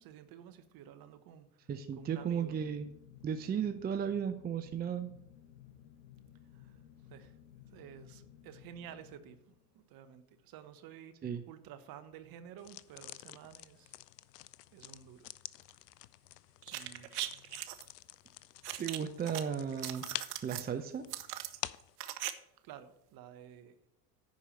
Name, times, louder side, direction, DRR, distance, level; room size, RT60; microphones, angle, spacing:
voice 1, 0.0-2.6 6.5-6.8 7.1-7.3 7.7-14.0 14.7-15.3 16.7-17.4 22.6-23.7, right 9 dB, 45° right, 11 dB, 1.2 m, -52 dB
sound 1, 1.6-10.0, left 10 dB, 55° left, 1.4 m, -57 dB
voice 2, 1.7-2.9 3.2-5.1 11.2-11.4 18.8-20.1 20.4-21.1, right 7 dB, 20° right, 9 dB, 0.6 m, -35 dB
sound 2, 12.6-22.0, left 15 dB, 80° left, 0.5 m, -48 dB
sound 3, 16.6-17.8 18.6-19.4 19.7-20.7 21.1-22.3 22.6-22.7, right 14 dB, 70° right, 0.9 m, -40 dB
10.5 x 4.8 x 6.8 m, 0.80 s
hypercardioid pair, 80°, 47 cm